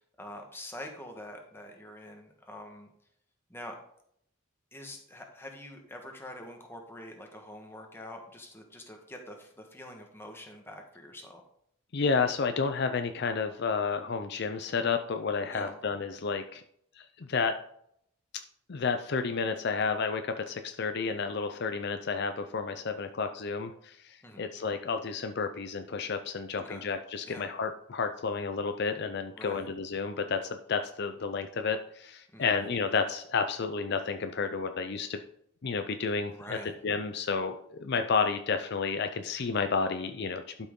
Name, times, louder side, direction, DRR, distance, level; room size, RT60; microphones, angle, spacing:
voice 1, 0.2-2.9 3.5-3.8 4.7-11.4 15.5-15.8 24.2-24.5 26.5-26.8 27.3-27.5 29.3-29.7 32.3-32.6 36.3-36.7, left 1 dB, 10° left, 2 dB, 1.4 m, -45 dB
voice 2, 11.9-16.6 17.0-17.5 18.7-35.2 35.6-36.6 36.8-40.4, left 5 dB, 55° left, 7 dB, 0.5 m, -31 dB
12.0 x 6.1 x 3.7 m, 0.70 s
head